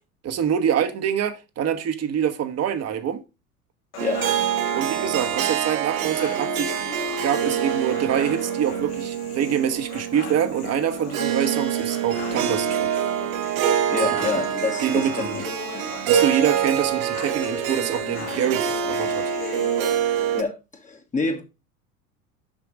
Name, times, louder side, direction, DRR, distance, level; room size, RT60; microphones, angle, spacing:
voice 1, 0.2-3.2 4.7-6.7 7.2-12.9 14.2-14.3 14.8-15.4 16.0-19.3, right 8 dB, 35° right, 1.3 m, -25 dB
sound 1, 3.9-19.9, left 6 dB, 75° left, 2.1 m, -38 dB
Harp, 4.0-20.4, right 9 dB, 60° right, 1.5 m, -26 dB
voice 2, 13.9-15.4 15.7-15.9 20.3-21.4, left 4 dB, 15° left, 1.4 m, -27 dB
7.4 x 5.9 x 5.0 m
hypercardioid pair, 80°, 45 cm